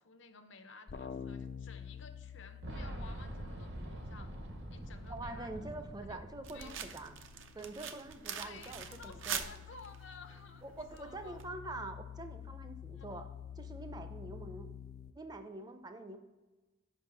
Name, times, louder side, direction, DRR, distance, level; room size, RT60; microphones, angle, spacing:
voice 1, 0.0-4.4 4.7-5.7 6.1-6.8 8.3-11.5 13.0-13.1, left 4 dB, 70° left, 8 dB, 0.7 m, -54 dB
sound 1, 0.9-5.2 5.5-15.1, left 7 dB, 50° left, 0.3 m, -49 dB
Boom, 2.6-7.4 7.6-7.7 8.8-8.9, right 1 dB, 60° right, 0.9 m, -44 dB
voice 2, 5.1-7.1 7.5-9.4 10.6-13.3 13.6-14.7 15.1-16.2, right 2 dB, 20° right, 8 dB, 0.5 m, -45 dB
sound 2, 6.4-11.5, right 8 dB, 80° right, 0.6 m, -44 dB
5.3 x 5.3 x 5.4 m, 1.2 s
head